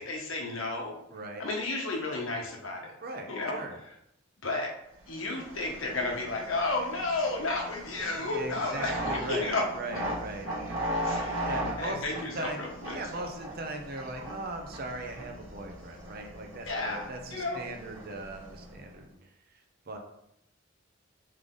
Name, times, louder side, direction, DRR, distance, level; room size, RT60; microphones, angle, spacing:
voice 1, 0.0-1.0 1.4-2.9 3.3-3.6 4.4-4.8 5.1-9.7 11.0-11.5 11.8-13.3 16.6-17.6, left 2 dB, 85° left, 1 dB, 1.0 m, -32 dB
voice 2, 1.1-1.4 3.0-3.8 7.9-10.5 11.4-12.6 12.9-19.6 19.9-20.0, right 2 dB, 50° right, 3 dB, 0.7 m, -39 dB
sound 1, 5.1-19.0, right 1 dB, 90° right, 0.9 m, -38 dB
3.7 x 3.3 x 3.7 m, 0.77 s
head